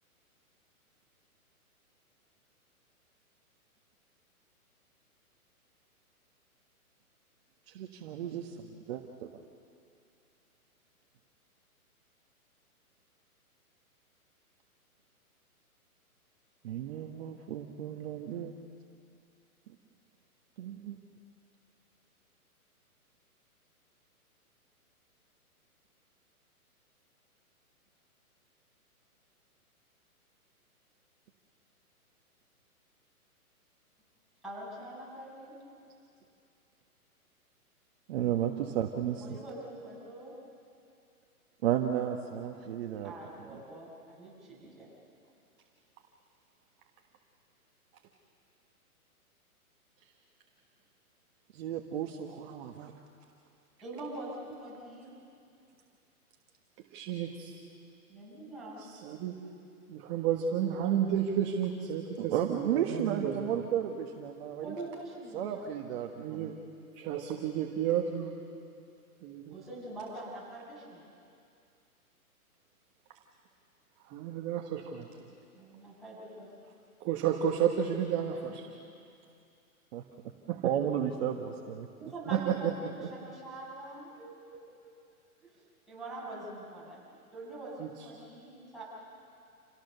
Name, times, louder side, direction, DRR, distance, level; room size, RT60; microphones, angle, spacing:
voice 1, 7.7-8.6 8.9-9.3 16.6-18.6 20.6-21.0 38.1-39.4 41.6-43.1 51.5-52.9 62.2-64.7 65.3-66.5 79.9-80.0 80.6-81.9, right 10 dB, 45° right, 2 dB, 1.4 m, -33 dB
voice 2, 34.4-35.6 39.2-40.3 43.0-44.9 53.8-55.1 58.1-58.8 64.6-65.6 69.5-71.0 75.5-76.5 78.3-78.4 82.0-84.9 85.4-85.6 85.9-87.0 87.3-88.8, right 2 dB, ahead, -9 dB, 7.7 m, -44 dB
voice 3, 56.9-57.5 59.0-59.4 59.9-63.6 66.2-66.5 67.0-68.4 69.2-69.5 74.1-75.1 77.0-78.6 80.5-80.7 82.3-82.7 87.8-87.9, right 9 dB, 25° right, 1 dB, 1.5 m, -31 dB
28.5 x 17.0 x 6.9 m, 2.5 s
hypercardioid pair, 145°, 45 cm